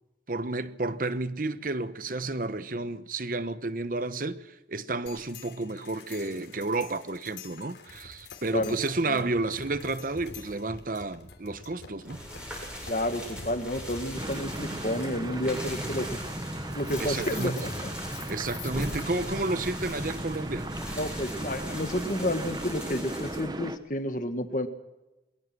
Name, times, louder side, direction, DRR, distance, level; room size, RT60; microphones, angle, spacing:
voice 1, 0.3-12.2 17.0-17.7 18.3-20.7, right 2 dB, 50° right, 0.9 m, -31 dB
sound 1, 5.1-19.3, left 4 dB, 70° left, 3.3 m, -47 dB
sound 2, 12.0-23.4, equal, 5° right, 7.6 m, -40 dB
voice 2, 12.9-16.2 16.7-17.9 21.0-24.7, left 1 dB, 45° left, 1.8 m, -31 dB
sound 3, 14.1-23.8, right 1 dB, 20° right, 1.0 m, -36 dB
22.0 x 22.0 x 6.2 m
head